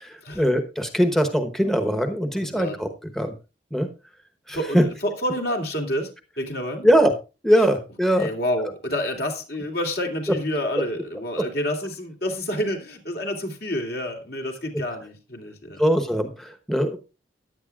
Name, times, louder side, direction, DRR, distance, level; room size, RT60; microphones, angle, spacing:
voice 1, 0.0-2.9 3.1-3.4 3.7-3.9 4.5-4.8 6.8-7.1 7.4-8.3 15.8-17.0, equal, ahead, 7 dB, 1.0 m, -21 dB
voice 2, 2.4-2.8 4.5-6.1 6.4-6.9 8.2-15.8, equal, 60° left, 3 dB, 3.0 m, -28 dB
15.5 x 10.5 x 2.4 m, 0.30 s
head